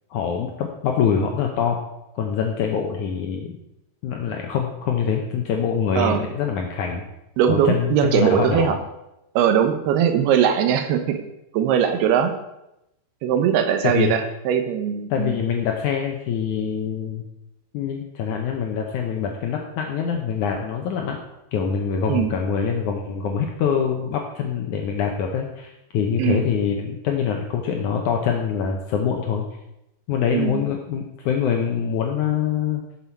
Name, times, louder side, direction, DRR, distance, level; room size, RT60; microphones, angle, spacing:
voice 1, 0.1-1.8 2.1-3.6 4.0-7.0 7.5-8.8 13.8-14.1 15.1-17.2 17.7-21.2 21.5-29.5 30.1-32.8, left 7 dB, 85° left, 2 dB, 1.7 m, -24 dB
voice 2, 7.4-8.8 9.4-11.2 11.5-12.3 13.2-15.3 22.1-22.3 26.2-26.4 30.3-30.6, right 8 dB, 75° right, 6 dB, 2.9 m, -20 dB
12.5 x 7.5 x 4.6 m, 0.87 s
omnidirectional pair, 4.8 m